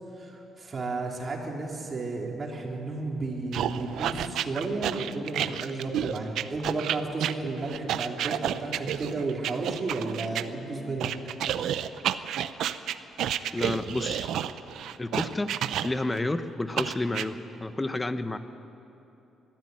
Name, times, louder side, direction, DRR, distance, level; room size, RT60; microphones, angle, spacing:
voice 1, 0.2-11.1, right 3 dB, 35° right, -1 dB, 4.1 m, -33 dB
sound 1, 3.5-10.4 11.0-16.2 16.8-17.3, right 10 dB, 80° right, 0.7 m, -30 dB
voice 2, 13.5-14.3 15.0-15.5 15.8-18.4, left 2 dB, 15° left, 10 dB, 1.1 m, -30 dB
22.0 x 14.0 x 9.6 m, 3.0 s
cardioid pair, 90°, 0 cm